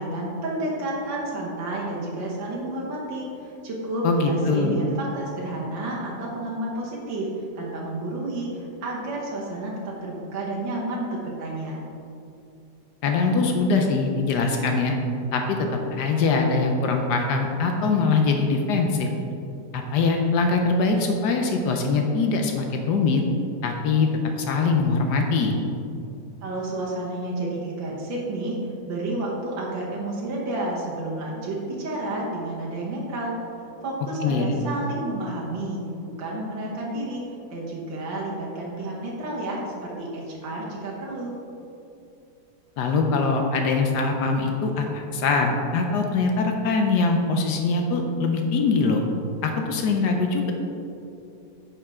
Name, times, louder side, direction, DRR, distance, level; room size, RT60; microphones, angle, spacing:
voice 1, 0.0-7.3 7.6-11.8 26.4-28.6 28.9-33.4 33.8-35.8 36.2-37.2 37.5-41.4, right 2 dB, 85° right, -4 dB, 1.9 m, -30 dB
voice 2, 4.0-4.8 13.0-15.0 15.3-19.1 19.7-23.2 23.6-24.1 24.4-25.6 34.2-34.5 42.8-49.0 49.4-50.5, left 4 dB, 70° left, 3 dB, 1.2 m, -22 dB
8.7 x 5.5 x 3.6 m, 2.6 s
omnidirectional pair, 2.0 m